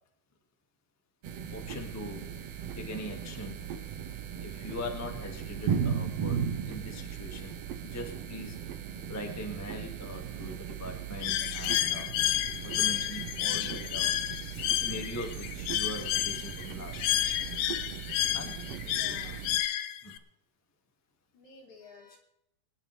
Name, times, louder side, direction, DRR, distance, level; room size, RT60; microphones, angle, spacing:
sound 1, 1.2-19.6, right 8 dB, 80° right, 1.4 m, -37 dB
voice 1, 1.5-2.3 2.7-3.6 4.4-6.4 6.7-7.6 7.8-8.6 9.1-12.1 12.6-14.2 14.7-17.3 18.3-18.6 19.0-19.2 20.0-20.2, left 1 dB, 15° left, 3 dB, 0.5 m, -41 dB
Bird, 11.2-20.2, left 13 dB, 90° left, 1.6 m, -31 dB
voice 2, 18.8-19.5 20.0-20.2 21.3-22.2, left 4 dB, 55° left, 0 dB, 4.2 m, -53 dB
25.0 x 10.5 x 3.3 m, 0.77 s
omnidirectional pair, 4.2 m